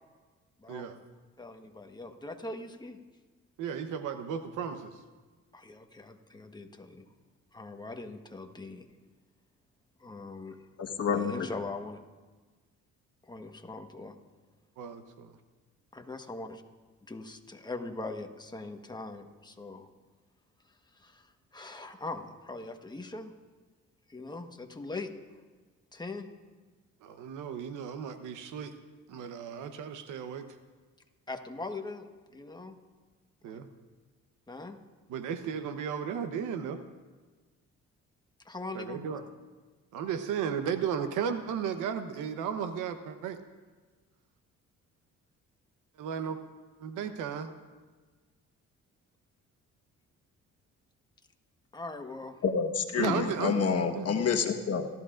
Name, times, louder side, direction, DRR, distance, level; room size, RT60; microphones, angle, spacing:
voice 1, 1.4-3.0 5.5-7.0 7.5-8.9 10.0-10.6 11.1-12.0 13.2-14.2 15.9-16.6 17.1-19.9 20.9-23.3 24.1-25.1 25.9-26.3 31.3-32.1 32.3-32.8 33.5-33.6 34.5-34.8 38.4-39.0 47.0-47.1 51.7-52.3, left 3 dB, 15° left, 5 dB, 1.3 m, -41 dB
voice 2, 3.6-4.9 14.8-15.3 27.0-28.8 29.1-30.5 33.4-33.7 35.1-36.8 38.7-39.2 39.9-43.4 46.0-46.4 46.8-47.5 53.0-53.6 53.9-54.1, right 7 dB, 90° right, 9 dB, 1.0 m, -34 dB
voice 3, 10.8-11.5 52.4-54.9, left 6 dB, 55° left, 3 dB, 1.5 m, -28 dB
26.5 x 13.5 x 2.6 m, 1.4 s
cardioid pair, 90°, 30 cm